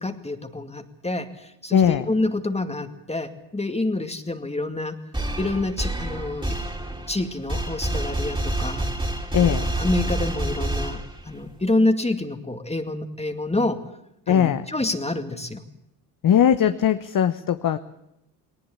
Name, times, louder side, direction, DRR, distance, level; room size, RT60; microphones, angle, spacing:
voice 1, 0.0-5.0 5.4-6.6 7.1-8.9 9.4-13.8 14.3-15.6, left 2 dB, 15° left, 7 dB, 2.3 m, -27 dB
voice 2, 1.7-2.0 9.3-9.7 14.3-14.7 16.2-17.8, left 9 dB, 45° left, 10 dB, 1.2 m, -19 dB
sound 1, 5.1-11.5, right 1 dB, 10° right, 3.5 m, -28 dB
19.5 x 19.0 x 8.5 m, 0.82 s
hypercardioid pair, 60°, 45 cm